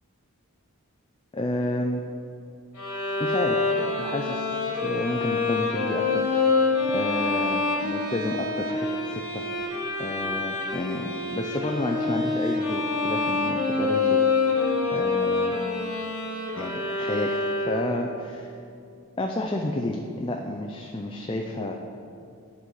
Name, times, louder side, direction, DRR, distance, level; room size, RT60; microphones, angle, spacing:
voice 1, 1.3-2.0 3.2-6.3 6.9-9.4 10.0-14.5 14.9-15.6 16.6-18.5 19.2-21.7, left 1 dB, 25° left, 2 dB, 0.4 m, -31 dB
Bowed string instrument, 2.8-18.0, left 3 dB, 85° left, 2.1 m, -26 dB
11.0 x 4.1 x 6.3 m, 2.5 s
head